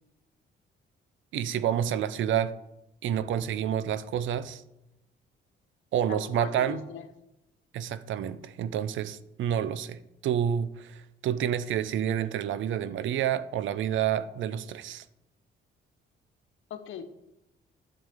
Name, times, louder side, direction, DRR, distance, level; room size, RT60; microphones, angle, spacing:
voice 1, 1.3-2.5 3.0-4.6 5.9-6.8 7.7-15.0, right 9 dB, 75° right, 0.6 m, -29 dB
voice 2, 6.1-7.1 16.7-17.1, left 7 dB, 80° left, 1.1 m, -39 dB
12.0 x 7.1 x 3.7 m
cardioid pair, 90°, 20 cm